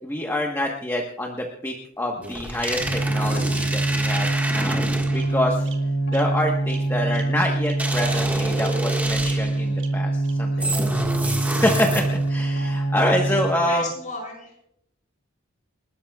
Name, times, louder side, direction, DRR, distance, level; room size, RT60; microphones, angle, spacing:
voice 1, 0.0-5.7 6.1-11.0 11.5-12.0 12.3-13.8, left 1 dB, 10° left, 0 dB, 1.2 m, -26 dB
Bird vocalization bird call bird song, 2.1-2.9 3.6-3.7 4.1-4.2 4.6-4.7 5.1-5.3 5.6-5.8 6.1-6.2 6.7-6.8 7.1-7.2 7.6-7.7 8.1-8.2 8.6-8.7 9.2-9.3 9.8-9.9 10.2-10.3, right 6 dB, 60° right, 3.4 m, -42 dB
sound 1, 2.2-5.4 7.8-9.6 10.6-12.4, right 1 dB, 10° right, 1.6 m, -29 dB
sound 2, 2.8-13.4, right 2 dB, 65° left, 7.1 m, -24 dB
voice 2, 10.5-11.7 13.6-14.5, left 2 dB, 35° left, 0 dB, 6.4 m, -37 dB
29.5 x 13.0 x 2.4 m, 0.76 s
head